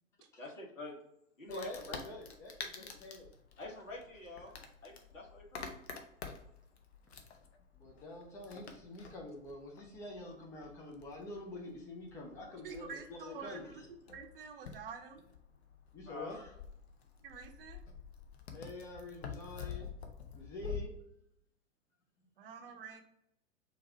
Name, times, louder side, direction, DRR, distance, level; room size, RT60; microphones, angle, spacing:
voice 1, 0.4-0.9 1.4-2.0 2.8-2.9 3.6-4.6 4.8-5.7 16.1-16.4, left 2 dB, 80° left, -1 dB, 1.4 m, -46 dB
Wood, 1.5-20.8, left 7 dB, 55° left, 0.8 m, -49 dB
voice 2, 1.5-3.3 7.7-13.9 15.9-16.5 18.5-19.9 20.3-20.9, left 1 dB, 10° left, 0 dB, 0.4 m, -46 dB
voice 3, 12.6-15.2 17.2-17.8 22.4-23.0, right 6 dB, 45° right, 4 dB, 0.7 m, -48 dB
4.7 x 2.7 x 3.3 m, 0.77 s
figure-of-eight pair, 105°, 39 cm